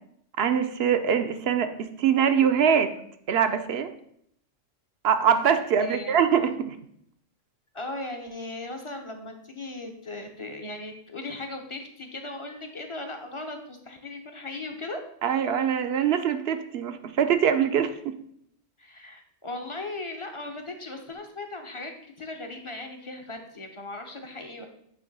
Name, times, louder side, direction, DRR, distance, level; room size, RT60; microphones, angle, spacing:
voice 1, 0.4-2.9 3.3-3.9 5.0-6.8 15.2-18.1, right 8 dB, 65° right, 9 dB, 0.8 m, -23 dB
voice 2, 5.8-6.2 7.7-15.0 18.8-24.7, left 2 dB, 30° left, 4 dB, 0.7 m, -37 dB
8.5 x 3.0 x 5.3 m, 0.69 s
omnidirectional pair, 1.3 m